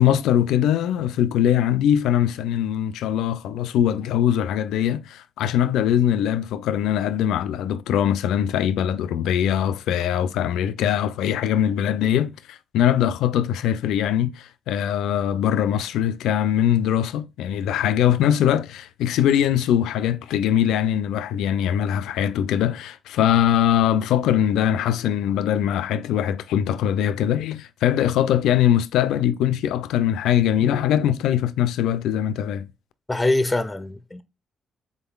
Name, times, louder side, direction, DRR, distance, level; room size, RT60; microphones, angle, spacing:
voice 1, 0.0-32.7, left 10 dB, 85° left, 0.3 m, -22 dB
voice 2, 33.1-34.2, left 2 dB, 10° left, 0.4 m, -23 dB
3.8 x 3.6 x 2.3 m
cardioid pair, 90°, 0 cm